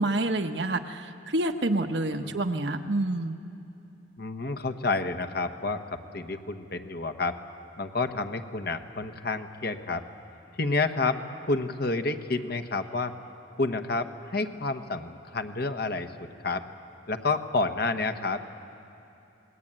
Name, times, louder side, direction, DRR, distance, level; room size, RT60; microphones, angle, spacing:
voice 1, 0.0-3.4, right 2 dB, 60° right, 6 dB, 1.1 m, -28 dB
voice 2, 4.2-7.4 7.8-10.0 10.6-11.2 11.5-13.1 13.6-16.1 16.4-16.6 17.1-18.6, left 3 dB, 55° left, 7 dB, 1.2 m, -29 dB
28.0 x 20.5 x 9.0 m, 2.8 s
head